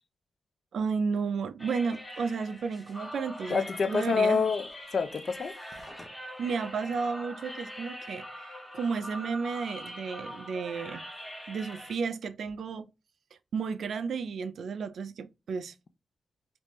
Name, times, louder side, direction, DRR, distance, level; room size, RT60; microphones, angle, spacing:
voice 1, 0.7-4.4 6.4-11.0 11.5-12.9 13.5-15.7, right 5 dB, 85° right, 0.4 m, -33 dB
sound 1, 1.6-12.0, equal, 10° left, 0.7 m, -43 dB
voice 2, 3.5-5.6, left 5 dB, 50° left, 0.4 m, -27 dB
3.3 x 2.5 x 3.0 m
wide cardioid pair, 155°, 0 cm